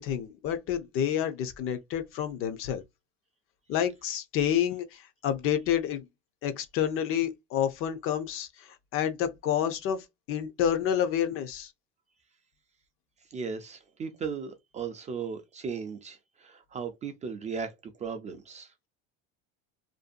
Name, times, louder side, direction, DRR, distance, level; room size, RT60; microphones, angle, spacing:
voice 1, 0.0-2.8 3.7-6.1 6.4-11.7, left 9 dB, 45° left, 0.5 m, -29 dB
voice 2, 13.3-18.7, right 5 dB, 25° right, 0.4 m, -37 dB
2.6 x 2.2 x 2.4 m
supercardioid pair, 115°, 30 cm